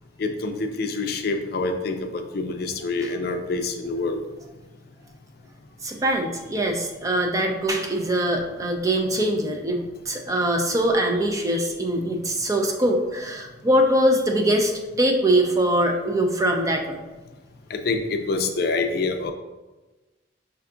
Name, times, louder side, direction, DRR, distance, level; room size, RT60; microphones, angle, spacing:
voice 1, 0.2-4.2 17.7-19.3, left 3 dB, 55° left, 6 dB, 0.4 m, -26 dB
voice 2, 5.8-17.0, right 1 dB, 20° right, 3 dB, 0.4 m, -23 dB
5.6 x 2.3 x 3.7 m, 1.1 s
head